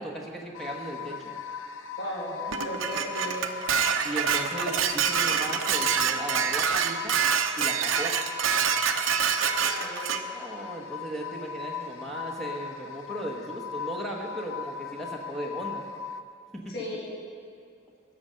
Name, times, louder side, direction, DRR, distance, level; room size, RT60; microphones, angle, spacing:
voice 1, 0.0-1.3 4.0-7.2 7.6-8.2 10.3-15.8 16.5-16.7, right 1 dB, ahead, -1 dB, 1.1 m, -37 dB
sound 1, 0.5-16.2, left 6 dB, 75° left, 0.5 m, -38 dB
voice 2, 2.0-3.8 9.6-10.2 16.7-17.2, equal, 50° left, -4 dB, 2.0 m, -36 dB
Dishes pots and pans, 2.5-10.2, right 7 dB, 80° right, 0.7 m, -26 dB
15.5 x 6.7 x 6.3 m, 2.3 s
head